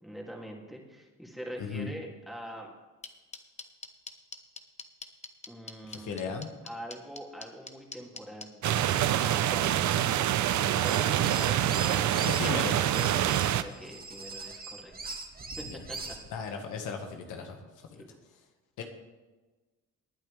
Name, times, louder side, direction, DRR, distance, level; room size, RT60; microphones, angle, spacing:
voice 1, 0.0-2.7 5.5-6.3 6.6-8.6 9.2-15.1 15.6-16.2 17.3-17.6 17.9-18.1, equal, ahead, -1 dB, 2.7 m, -44 dB
voice 2, 1.6-1.9 5.9-6.5 12.4-12.7 15.7-15.8 16.3-17.6 17.9-18.0 18.8-18.9, left 5 dB, 85° left, 4 dB, 1.7 m, -36 dB
sound 1, 3.0-8.7, left 3 dB, 20° left, 1.1 m, -42 dB
sound 2, 8.6-13.6, right 11 dB, 70° right, 0.7 m, -26 dB
sound 3, 10.7-12.5 12.9-16.3, right 3 dB, 30° right, 1.9 m, -41 dB
20.0 x 9.1 x 3.4 m, 1.2 s
cardioid pair, 90°, 30 cm